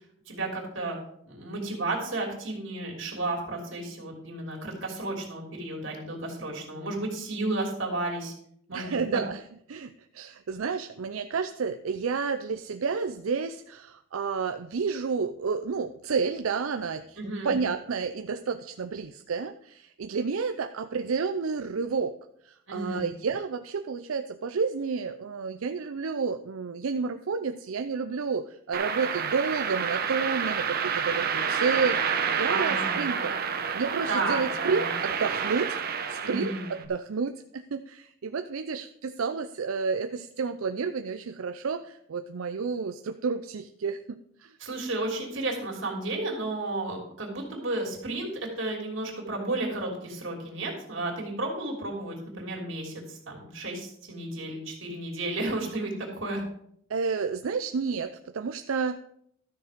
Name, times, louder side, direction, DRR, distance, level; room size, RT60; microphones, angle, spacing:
voice 1, 0.3-1.0 1.2-8.3 8.7-9.2 17.2-17.6 22.7-23.1 32.5-33.3 34.1-34.9 36.2-36.7 44.6-56.4, right 2 dB, 65° right, -1 dB, 3.2 m, -33 dB
voice 2, 8.7-9.4 9.7-22.2 22.4-33.3 33.7-35.8 36.1-44.5 56.9-59.0, right 5 dB, 90° right, 9 dB, 0.5 m, -30 dB
sound 1, 28.7-36.8, right 6 dB, 50° right, 0.9 m, -29 dB
12.5 x 6.7 x 5.2 m, 0.69 s
head